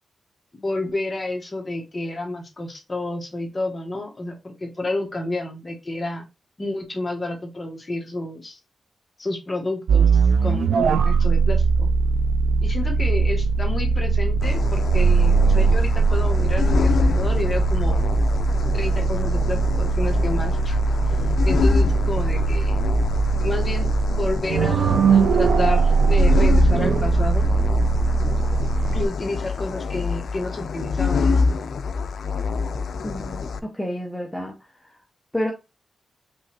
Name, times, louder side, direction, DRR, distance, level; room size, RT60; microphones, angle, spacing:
voice 1, 0.5-6.3 6.6-8.6 9.2-11.9 12.6-18.0 18.7-20.8 21.1-21.2 21.4-22.8 23.4-27.5 28.9-31.4, left 2 dB, 25° left, 1.3 m, -30 dB
sound 1, 9.9-29.1, right 4 dB, 80° right, 0.3 m, -20 dB
sound 2, 14.4-33.6, left 4 dB, 70° left, 0.4 m, -26 dB
voice 2, 33.0-34.6 35.3-35.5, equal, ahead, 0.7 m, -29 dB
5.3 x 3.0 x 2.8 m
wide cardioid pair, 130°, 0 cm